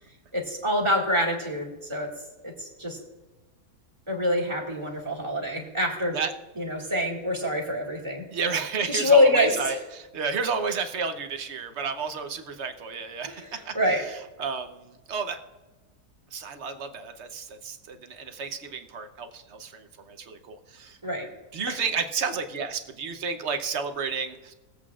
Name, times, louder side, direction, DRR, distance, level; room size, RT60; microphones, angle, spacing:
voice 1, 0.3-2.1 2.4-3.0 4.1-6.1 6.6-8.3 8.9-9.8 13.3-14.0 21.0-21.3 21.7-21.8, left 1 dB, 20° right, -2 dB, 2.0 m, -25 dB
voice 2, 8.3-13.7 14.4-15.4 16.3-21.0 21.5-24.5, right 5 dB, 50° right, 7 dB, 1.0 m, -31 dB
21.0 x 8.0 x 2.4 m, 1.1 s
omnidirectional pair, 1.7 m